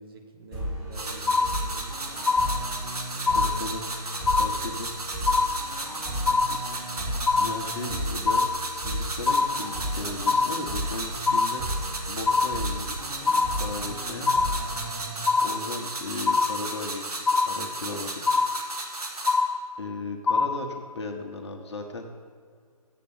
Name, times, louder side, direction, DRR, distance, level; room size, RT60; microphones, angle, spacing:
voice 1, 0.0-2.5 3.1-3.6 4.4-4.8 6.2-6.5, right 3 dB, 35° right, 3 dB, 1.1 m, -48 dB
sound 1, 0.5-16.0, equal, ahead, 2.0 m, -35 dB
sound 2, 0.9-19.4, right 2 dB, 75° right, 1.6 m, -35 dB
sound 3, 1.3-1.9 2.3-2.9 3.3-3.9 4.3-4.9 5.3-5.9 6.3-6.9 7.3-7.9 8.3-8.9 9.3-9.9 10.3-10.9 11.3-11.9 12.3-12.9 13.3-13.9 14.3-14.9 15.3-15.9 16.3-16.9 17.3-17.9 18.3-18.9 19.3-19.9 20.3-20.9, left 4 dB, 65° left, 0.6 m, -25 dB
voice 2, 3.3-3.8 4.4-4.9 6.5-6.6 7.4-11.6 12.1-13.1 13.5-14.3 15.4-17.1 17.4-18.2 19.8-22.1, left 3 dB, 45° left, 4 dB, 1.0 m, -36 dB
7.6 x 6.7 x 7.0 m, 2.1 s
figure-of-eight pair, 150°, 20 cm